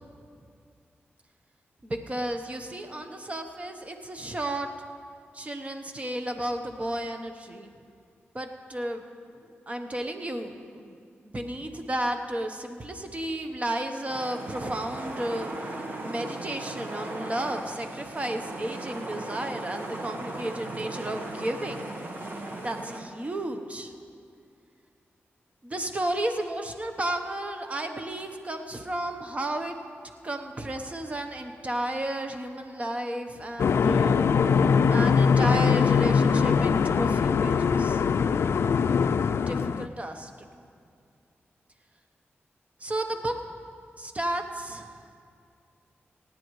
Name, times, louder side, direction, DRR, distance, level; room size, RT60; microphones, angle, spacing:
voice 1, 1.8-4.7 5.3-7.7 8.3-9.0 9.4-11.0 11.3-15.5 16.0-21.8 22.6-23.9 25.6-29.7 30.2-34.2 34.9-38.0 39.5-40.3 42.8-43.4 44.0-44.9, right 1 dB, 30° right, 5 dB, 1.0 m, -33 dB
sound 1, 14.1-23.0, right 2 dB, 50° right, 1.4 m, -37 dB
sound 2, 33.6-39.9, left 6 dB, 75° left, 0.3 m, -22 dB
26.0 x 9.3 x 3.2 m, 2.3 s
wide cardioid pair, 90°, 4 cm